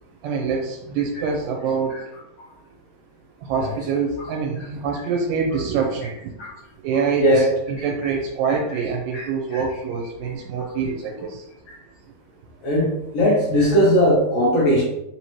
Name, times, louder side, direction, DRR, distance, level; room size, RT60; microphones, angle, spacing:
voice 1, 0.2-1.9 3.4-6.1 6.8-11.4, right 5 dB, 85° right, 0 dB, 2.2 m, -25 dB
voice 2, 13.1-14.8, equal, 70° left, -6 dB, 1.6 m, -18 dB
5.1 x 2.8 x 3.0 m, 0.86 s
omnidirectional pair, 3.8 m